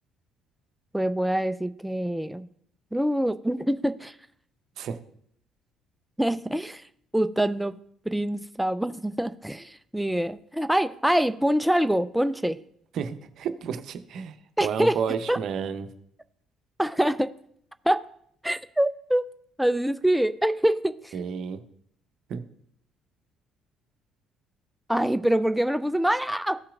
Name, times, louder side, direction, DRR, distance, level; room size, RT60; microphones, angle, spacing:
voice 1, 0.9-2.5 2.9-4.2 6.2-6.9 7.1-7.8 8.1-12.6 14.6-15.0 15.3-15.4 16.8-17.3 17.9-18.0 18.4-19.3 19.6-21.1 24.9-26.6, right 1 dB, 5° right, 12 dB, 0.4 m, -25 dB
voice 2, 12.9-15.9 21.1-21.6 22.3-22.4, right 7 dB, 60° right, 10 dB, 0.7 m, -31 dB
14.5 x 5.7 x 2.4 m, 0.67 s
hypercardioid pair, 50°, 0 cm